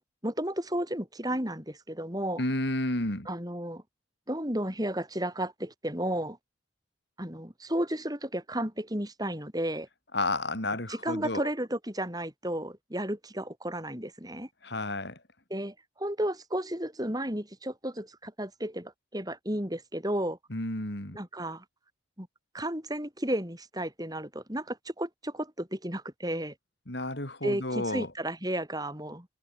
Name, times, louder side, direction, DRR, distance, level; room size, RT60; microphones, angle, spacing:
voice 1, 0.0-2.4 3.3-3.8 4.3-6.4 7.2-9.9 10.9-14.5 15.5-20.4 21.1-21.6 22.2-22.3 22.5-26.5 27.4-29.3, right 1 dB, 20° right, 7.8 m, -33 dB
voice 2, 2.4-3.3 10.1-11.5 14.6-15.2 20.5-21.2 26.9-28.1, left 2 dB, 60° left, 4.0 m, -31 dB
head